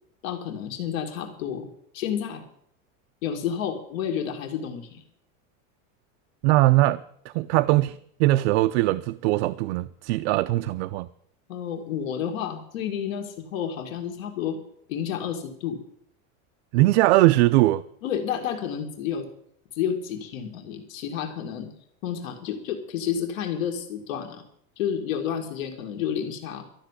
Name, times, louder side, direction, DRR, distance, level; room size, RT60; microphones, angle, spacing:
voice 1, 0.2-1.7 1.9-2.4 3.2-5.0 11.5-14.6 14.9-15.8 18.0-19.3 19.7-21.7 22.0-24.4 24.8-26.6, left 8 dB, 80° left, 2.3 m, -30 dB
voice 2, 6.4-7.0 7.3-11.1 16.7-17.8, right 18 dB, 60° right, 0.5 m, -20 dB
12.5 x 6.7 x 9.9 m
supercardioid pair, 170°, 40 cm